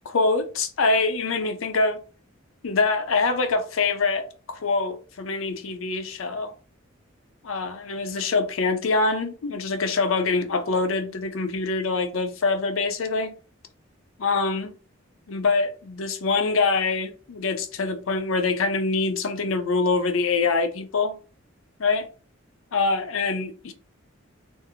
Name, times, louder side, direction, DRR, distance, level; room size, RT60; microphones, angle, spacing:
voice 1, 0.1-2.0 2.6-6.5 7.4-13.3 14.2-14.7 15.3-21.2 21.8-22.1 22.7-23.7, left 3 dB, 75° left, 0.5 m, -24 dB
2.6 x 2.5 x 2.7 m
head